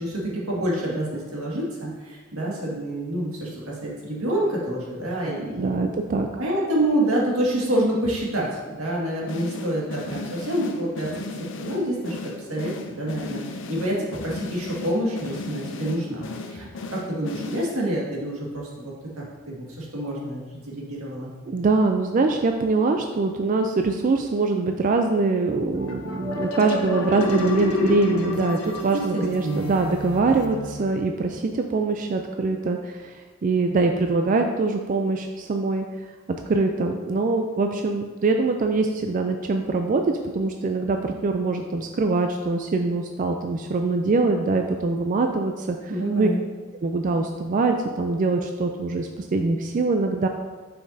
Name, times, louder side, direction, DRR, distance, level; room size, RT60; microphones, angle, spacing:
voice 1, 0.0-5.8 6.4-11.1 11.6-14.0 14.2-21.3 28.9-29.7 45.9-46.4, right 1 dB, 90° right, -4 dB, 1.9 m, -27 dB
voice 2, 5.6-6.3 21.5-35.9 36.3-40.0 40.3-45.9 46.2-46.3 46.8-50.3, right 3 dB, 40° right, 4 dB, 0.3 m, -23 dB
sound 1, 9.3-18.1, left 3 dB, 60° left, 0.5 m, -36 dB
sound 2, 25.8-31.2, left 1 dB, 85° left, 0.9 m, -29 dB
8.0 x 5.7 x 2.7 m, 1.4 s
head